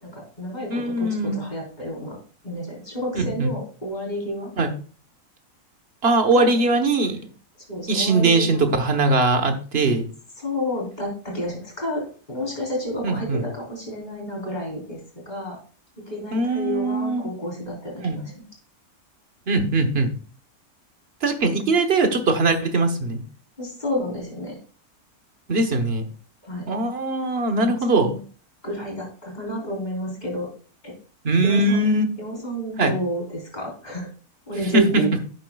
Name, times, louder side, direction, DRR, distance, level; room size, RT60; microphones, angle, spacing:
voice 1, 0.1-2.2 2.4-4.5 6.4-6.6 7.7-8.7 10.4-12.0 12.3-15.0 15.3-15.6 16.1-18.2 23.6-24.6 26.5-26.7 27.6-28.2 28.6-30.5 30.8-30.9 31.4-31.9 32.2-34.1 34.5-35.2, equal, 25° left, -1 dB, 4.3 m, -30 dB
voice 2, 0.7-1.4 3.1-3.5 4.6-4.7 6.0-7.2 7.9-10.1 13.0-13.5 16.3-17.3 18.0-18.2 19.5-20.1 21.2-23.2 25.5-26.0 26.7-28.1 31.2-32.1 32.8-32.9 34.6-35.0, right 2 dB, 45° right, 6 dB, 1.4 m, -21 dB
11.0 x 9.0 x 2.4 m, 0.39 s
omnidirectional pair, 1.6 m